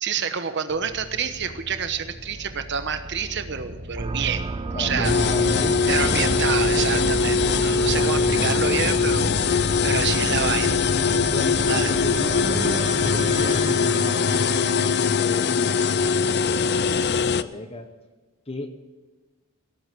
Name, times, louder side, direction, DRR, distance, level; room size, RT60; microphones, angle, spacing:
voice 1, 0.0-4.5 4.8-5.3 5.9-10.8 11.2-11.3 11.7-11.9, right 7 dB, 55° right, 9 dB, 1.1 m, -28 dB
sound 1, 0.7-13.3, right 1 dB, 70° right, 2.3 m, -39 dB
sound 2, 3.9-15.9, right 3 dB, 25° right, 0.4 m, -31 dB
voice 2, 4.7-6.4 7.8-8.6 11.3-14.5 15.1-17.9 18.5-18.7, left 2 dB, 25° left, 6 dB, 1.0 m, -35 dB
sound 3, 5.0-17.4, left 5 dB, 50° left, 0.5 m, -22 dB
17.5 x 8.5 x 7.8 m, 1.3 s
head